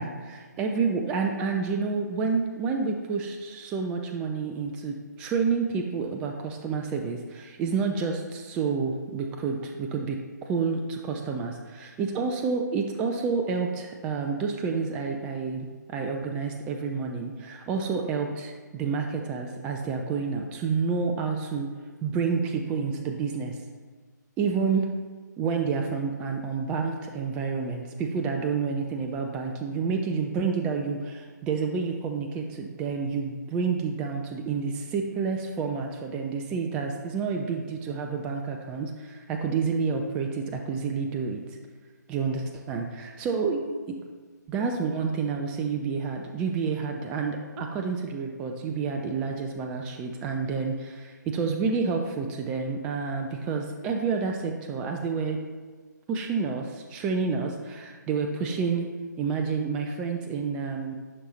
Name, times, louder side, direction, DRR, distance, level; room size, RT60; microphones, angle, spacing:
voice 1, 0.0-21.7 22.0-23.6 24.4-24.9 25.4-41.4 42.1-44.0 44.5-55.4 56.1-58.9 59.2-60.9, right 5 dB, 10° right, 3 dB, 0.3 m, -29 dB
11.0 x 5.4 x 3.0 m, 1.5 s
figure-of-eight pair, 140°, 10 cm